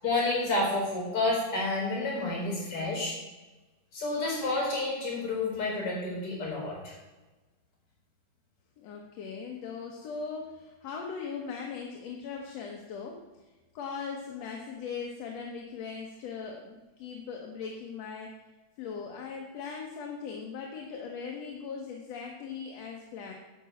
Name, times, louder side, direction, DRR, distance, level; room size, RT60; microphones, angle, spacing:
voice 1, 0.0-3.2 3.9-6.9, left 2 dB, 45° left, -2 dB, 5.6 m, -30 dB
voice 2, 8.8-13.2 13.7-18.4 18.8-23.3, left 5 dB, 65° left, 1 dB, 2.1 m, -39 dB
10.5 x 6.2 x 8.3 m, 1.2 s
omnidirectional pair, 3.5 m